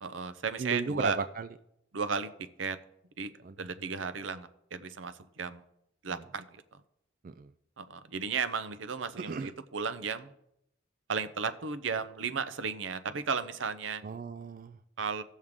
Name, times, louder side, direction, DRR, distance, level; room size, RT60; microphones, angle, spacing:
voice 1, 0.0-1.2 1.9-2.3 2.6-2.8 3.2-3.3 3.6-5.6 6.0-6.4 7.8-10.3 11.1-14.0 15.0-15.2, right 5 dB, 80° right, 11 dB, 0.7 m, -34 dB
voice 2, 0.6-1.5 3.4-3.9 6.1-6.2 7.2-7.5 9.2-9.5 14.0-14.8, right 5 dB, 45° right, 10 dB, 0.3 m, -36 dB
16.5 x 6.4 x 3.6 m, 0.77 s
head